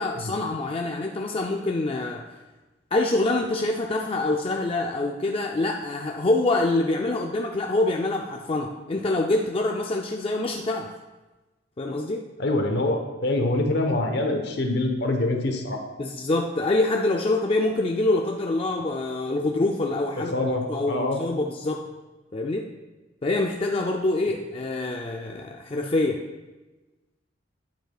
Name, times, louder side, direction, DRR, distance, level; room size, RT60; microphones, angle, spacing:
voice 1, 0.0-2.2 2.9-10.9 11.8-12.2 16.0-20.3 20.7-21.8 22.3-22.7 23.2-26.2, left 2 dB, 30° left, 1 dB, 0.4 m, -25 dB
voice 2, 12.4-15.8 20.3-21.2, left 2 dB, 60° left, 3 dB, 1.0 m, -25 dB
9.0 x 7.8 x 2.4 m, 1.1 s
head